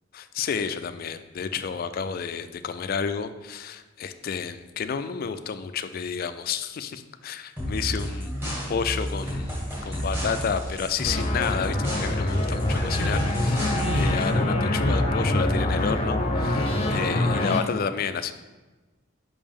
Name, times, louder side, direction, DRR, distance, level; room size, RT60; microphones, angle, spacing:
voice 1, 0.1-9.5 9.9-18.3, left 6 dB, 45° left, 10 dB, 0.3 m, -31 dB
sound 1, 7.6-14.3, equal, 10° right, 1.8 m, -30 dB
sound 2, 11.0-17.6, left 1 dB, 30° left, 0.7 m, -25 dB
5.4 x 5.3 x 3.5 m, 1.2 s
head